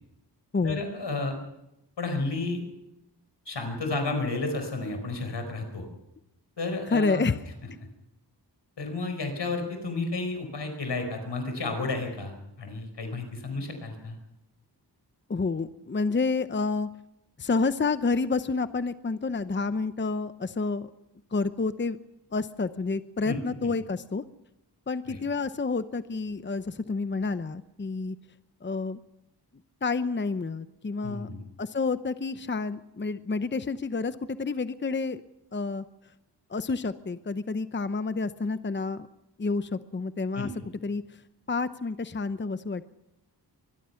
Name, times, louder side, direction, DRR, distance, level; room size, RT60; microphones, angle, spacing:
voice 1, 0.6-1.4 2.0-2.6 3.4-5.9 6.6-7.2 8.8-14.2 23.2-23.7 25.1-25.2 31.0-31.4 40.3-40.5, left 3 dB, 90° left, 6 dB, 5.0 m, -32 dB
voice 2, 6.9-7.4 15.3-16.9 17.4-20.9 21.3-22.0 22.3-24.2 24.9-28.2 28.6-29.0 29.8-31.3 31.6-35.2 35.5-35.8 36.5-39.1 39.4-40.5 40.8-41.0 41.5-42.8, left 4 dB, 25° left, 12 dB, 0.8 m, -29 dB
25.0 x 21.0 x 5.8 m, 0.87 s
wide cardioid pair, 90°, 41 cm